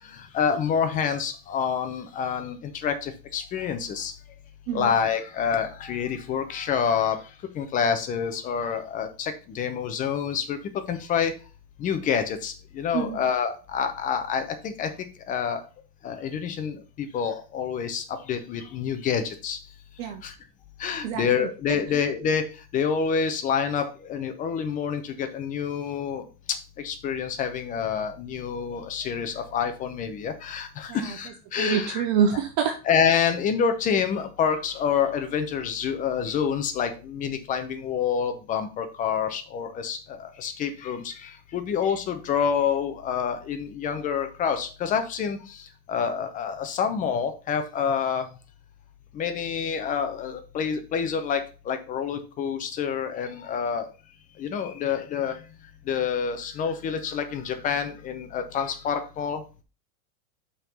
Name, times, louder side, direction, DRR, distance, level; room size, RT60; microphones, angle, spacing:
voice 1, 0.1-4.1 4.7-7.2 7.5-11.3 11.8-14.9 15.3-15.6 16.0-19.6 20.2-20.3 20.8-22.5 22.7-26.6 26.8-32.1 32.9-48.3 49.1-53.9 54.4-55.4 55.9-59.4, left 7 dB, 20° left, 8 dB, 0.6 m, -27 dB
voice 2, 21.0-22.0 30.9-31.2 31.6-32.8, right 7 dB, 25° right, 6 dB, 0.4 m, -27 dB
5.7 x 4.6 x 5.4 m, 0.34 s
supercardioid pair, 155°, 43 cm